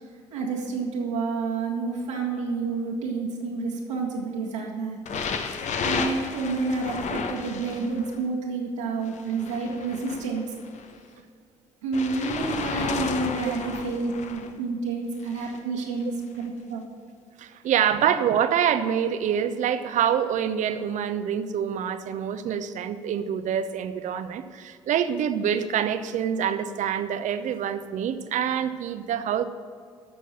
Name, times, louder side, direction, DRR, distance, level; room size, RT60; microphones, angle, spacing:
voice 1, 0.3-5.0 5.8-10.5 11.8-16.9, right 4 dB, 80° right, -4 dB, 1.8 m, -29 dB
sound 1, 5.0-8.2 9.1-10.9 11.9-14.5 15.2-15.6 16.4-16.5, left 5 dB, 50° left, 1.0 m, -32 dB
voice 2, 17.4-29.4, right 8 dB, 55° right, 11 dB, 0.8 m, -26 dB
13.5 x 6.3 x 6.7 m, 2.2 s
figure-of-eight pair, 45°, 15 cm